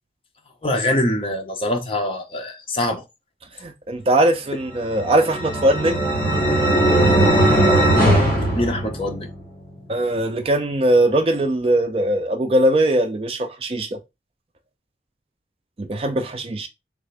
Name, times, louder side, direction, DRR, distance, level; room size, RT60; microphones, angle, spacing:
voice 1, 0.6-3.0 8.5-9.3, left 1 dB, 30° left, 0.7 m, -24 dB
voice 2, 3.6-6.1 9.9-14.0 15.8-16.7, right 1 dB, 35° right, 0.4 m, -20 dB
sound 1, 4.8-9.4, right 1 dB, 10° left, 1.3 m, -18 dB
3.5 x 2.5 x 3.2 m
head